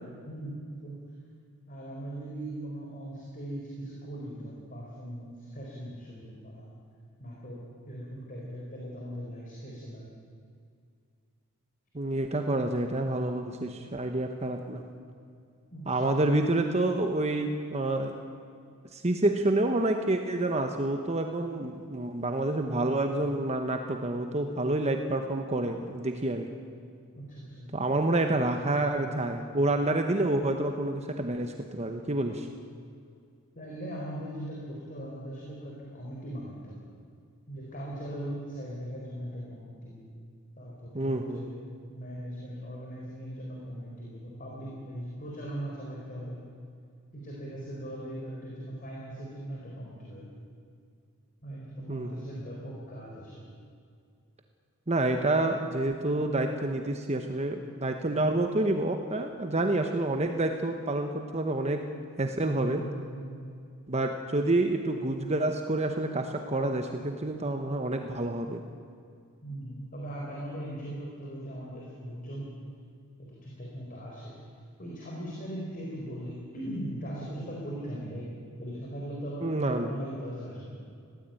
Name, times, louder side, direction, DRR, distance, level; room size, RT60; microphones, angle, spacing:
voice 1, 1.7-6.8 7.2-10.2 15.7-16.5 27.1-27.7 33.5-36.9 37.5-40.1 40.6-41.6 41.9-46.5 47.1-50.4 51.4-53.5 62.4-63.5 69.4-72.5 73.2-74.3 74.8-78.3 78.6-79.5 79.9-80.8, right 1 dB, 40° left, -4 dB, 4.4 m, -39 dB
voice 2, 11.9-14.8 15.9-18.1 18.9-26.5 27.7-32.5 40.9-41.4 51.9-52.1 54.9-61.8 62.2-62.8 63.9-68.6 79.4-79.9, right 2 dB, 30° right, 5 dB, 1.1 m, -28 dB
21.5 x 17.0 x 9.1 m, 2.3 s
head